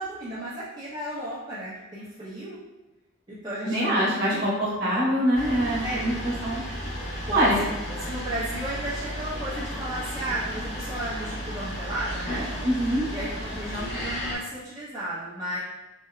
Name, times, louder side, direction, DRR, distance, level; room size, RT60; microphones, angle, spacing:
voice 1, 0.0-2.6 3.3-4.4 5.8-6.0 7.3-7.7 8.0-12.5 13.1-15.6, right 1 dB, 20° right, -10 dB, 0.4 m, -34 dB
voice 2, 3.6-6.1 6.4-6.6 7.3-7.6 12.6-13.0, equal, 50° right, -7 dB, 0.9 m, -24 dB
sound 1, 5.3-14.4, equal, 60° left, 1.2 m, -33 dB
2.8 x 2.1 x 2.3 m, 1.1 s
head